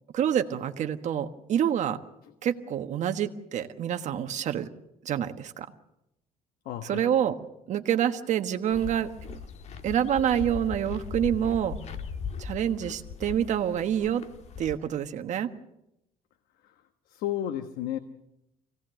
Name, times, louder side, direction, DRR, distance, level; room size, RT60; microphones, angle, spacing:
voice 1, 0.1-2.0 2.4-4.7 5.0-5.7 6.8-7.4 7.7-9.4 9.8-11.8 12.4-14.2 14.6-15.5, right 9 dB, 55° right, 8 dB, 1.4 m, -27 dB
voice 2, 6.6-7.0 16.6-16.7 17.1-18.0, left 11 dB, 85° left, 8 dB, 1.2 m, -32 dB
sound 1, 8.7-14.8, left 6 dB, 50° left, 1.6 m, -39 dB
25.0 x 17.5 x 7.7 m, 0.86 s
cardioid pair, 135°, 15 cm